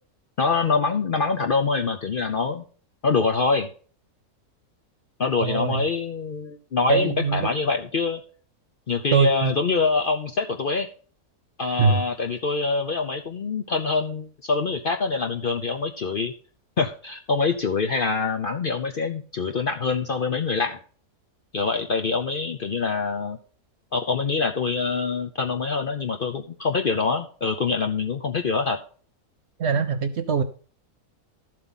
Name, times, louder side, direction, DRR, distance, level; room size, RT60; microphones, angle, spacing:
voice 1, 0.4-2.6 3.0-3.7 5.2-8.2 8.9-10.9 11.6-16.3 16.8-20.8 21.5-23.4 23.9-28.8, left 4 dB, 50° left, 5 dB, 0.7 m, -25 dB
voice 2, 5.4-5.8 6.9-7.5 9.1-9.5 11.8-12.0 29.6-30.4, right 5 dB, 60° right, 10 dB, 0.8 m, -22 dB
12.5 x 7.7 x 3.8 m, 0.41 s
omnidirectional pair, 1.6 m